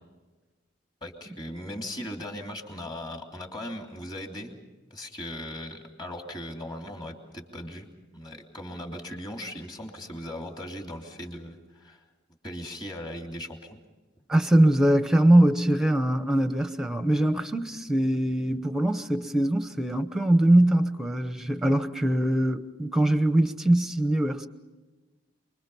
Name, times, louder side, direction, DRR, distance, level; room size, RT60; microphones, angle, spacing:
voice 1, 1.0-4.5 4.9-7.9 8.1-12.0 12.4-13.8, left 1 dB, 25° left, 2.9 m, -38 dB
voice 2, 14.3-24.5, right 1 dB, ahead, 0.9 m, -22 dB
29.0 x 22.0 x 5.6 m
head